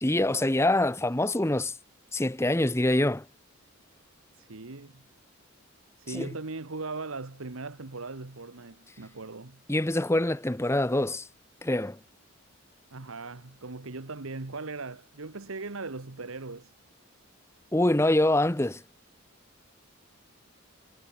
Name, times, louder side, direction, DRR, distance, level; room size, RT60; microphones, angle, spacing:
voice 1, 0.0-1.7 2.1-3.2 6.1-6.3 9.7-11.3 11.6-12.0 17.7-18.8, left 1 dB, 15° left, 0.8 m, -25 dB
voice 2, 4.4-5.0 6.0-9.6 12.9-16.7, right 3 dB, 85° right, 1.4 m, -39 dB
head